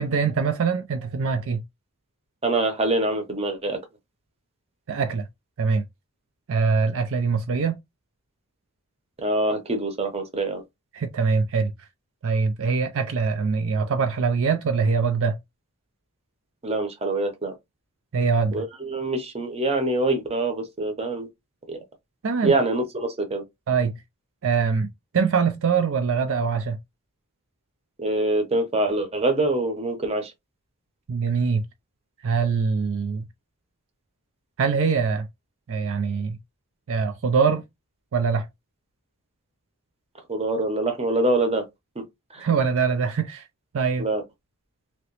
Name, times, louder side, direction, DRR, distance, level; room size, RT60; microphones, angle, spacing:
voice 1, 0.0-1.6 4.9-5.3 5.6-5.8 6.5-7.8 10.9-11.7 12.2-15.4 18.1-18.6 22.2-22.5 23.7-23.9 24.4-24.9 25.1-26.8 31.1-31.6 32.2-33.2 34.6-35.3 35.7-36.4 36.9-37.6 38.1-38.5 42.4-43.4 43.7-44.1, right 5 dB, 60° right, 0.4 m, -23 dB
voice 2, 2.4-3.8 9.2-10.6 16.6-17.5 18.5-21.3 21.7-21.8 22.4-23.4 28.0-30.3 40.3-41.6 42.3-42.4 44.0-44.2, right 2 dB, 30° right, 0.8 m, -24 dB
2.9 x 2.9 x 3.0 m
head